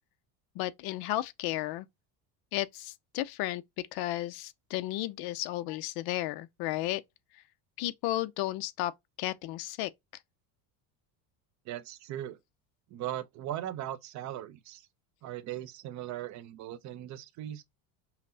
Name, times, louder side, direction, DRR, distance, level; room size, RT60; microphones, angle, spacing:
voice 1, 0.5-1.9 2.5-7.0 7.8-8.9 9.2-9.9, left 16 dB, 60° left, 0.6 m, -33 dB
voice 2, 11.7-12.4 12.9-14.8 15.2-17.6, right 12 dB, 40° right, 0.6 m, -39 dB
5.7 x 2.0 x 2.7 m
cardioid pair, 150°, 44 cm